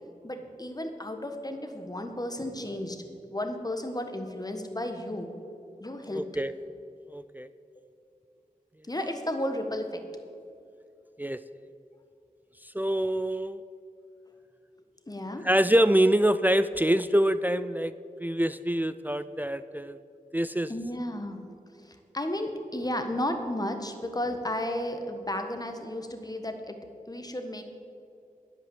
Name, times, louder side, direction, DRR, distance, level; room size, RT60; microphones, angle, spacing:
voice 1, 0.2-5.3 5.8-6.3 8.9-10.0 15.0-15.5 20.7-21.4 21.8-26.8 27.1-27.6, left 1 dB, 25° left, 6 dB, 1.4 m, -33 dB
voice 2, 6.1-6.5 7.1-7.5 11.2-11.4 12.7-13.6 15.4-17.9 18.2-20.0 20.3-20.7, right 1 dB, 10° right, 13 dB, 0.4 m, -25 dB
10.0 x 8.0 x 7.8 m, 2.6 s
cardioid pair, 45°, 15 cm